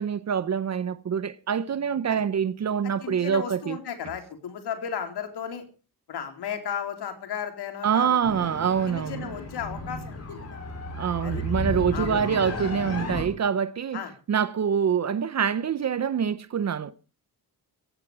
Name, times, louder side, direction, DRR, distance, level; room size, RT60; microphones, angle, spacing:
voice 1, 0.0-3.8 7.8-9.3 11.0-14.0 14.3-16.9, right 7 dB, 45° right, 0.8 m, -25 dB
voice 2, 3.0-5.6 6.1-8.2 8.9-10.6 11.2-11.4 11.9-12.8 13.9-14.1, left 8 dB, 90° left, 4.0 m, -35 dB
sound 1, 8.2-13.2, left 1 dB, 40° left, 6.5 m, -33 dB
16.5 x 15.0 x 4.8 m
wide cardioid pair, 165°, 38 cm